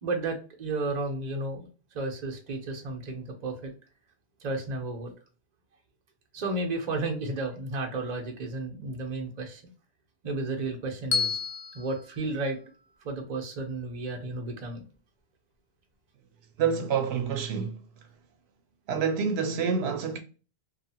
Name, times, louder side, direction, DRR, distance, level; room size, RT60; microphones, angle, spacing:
voice 1, 0.0-3.7 4.4-5.1 6.3-9.6 10.2-11.4 11.7-12.6 13.0-14.8, right 2 dB, 45° right, 0.8 m, -33 dB
Bell, 11.1-13.3, left 5 dB, 70° left, 0.7 m, -33 dB
voice 2, 16.6-17.8 18.9-20.2, right 6 dB, 85° right, 0.8 m, -27 dB
2.7 x 2.5 x 2.7 m
omnidirectional pair, 1.1 m